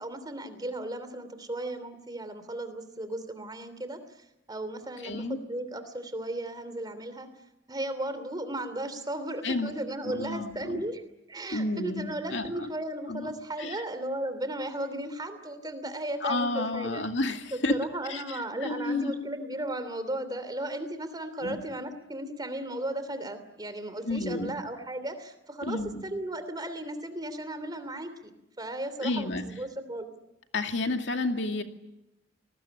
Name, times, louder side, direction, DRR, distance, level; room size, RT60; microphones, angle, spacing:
voice 1, 0.0-7.3 7.7-11.0 11.3-17.0 17.5-30.1, right 1 dB, 20° right, 11 dB, 3.1 m, -35 dB
voice 2, 5.0-5.4 9.4-9.7 10.0-10.8 11.5-12.7 13.1-13.3 13.6-13.8 16.2-17.8 18.1-19.1 21.4-21.6 24.0-24.6 25.6-26.0 29.0-29.5 30.5-31.6, left 2 dB, 75° left, 5 dB, 2.4 m, -31 dB
28.0 x 20.0 x 10.0 m, 0.90 s
head